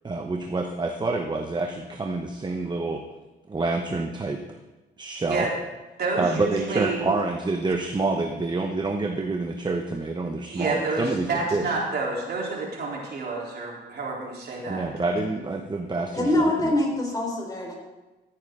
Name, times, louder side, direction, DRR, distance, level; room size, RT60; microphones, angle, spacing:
voice 1, 0.0-3.0 3.5-4.4 5.0-5.5 6.2-11.7 14.7-16.7, right 3 dB, 20° right, 4 dB, 0.9 m, -27 dB
voice 2, 6.0-7.1 10.5-14.8, right 3 dB, 55° right, -3 dB, 3.5 m, -29 dB
voice 3, 16.1-17.7, left 1 dB, 20° left, 0 dB, 3.6 m, -24 dB
15.0 x 8.9 x 3.8 m, 1.1 s
cardioid pair, 90°, 20 cm